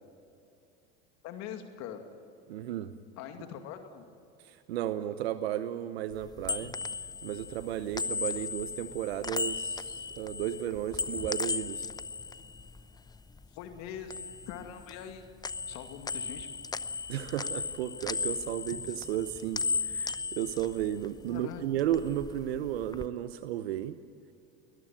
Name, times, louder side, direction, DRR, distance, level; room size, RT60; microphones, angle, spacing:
voice 1, 1.2-2.0 3.2-4.0 13.5-14.1 14.5-15.2 15.7-16.5 21.3-21.6, left 9 dB, 60° left, 5 dB, 2.4 m, -42 dB
voice 2, 2.5-2.9 4.4-6.7 7.2-11.9 17.1-24.0, right 11 dB, 85° right, 11 dB, 1.0 m, -34 dB
sound 1, 6.1-13.5 13.8-15.2 15.4-21.4 21.7-23.1, left 4 dB, 15° left, 0.8 m, -36 dB
21.0 x 21.0 x 9.0 m, 2.5 s
hypercardioid pair, 85°, 30 cm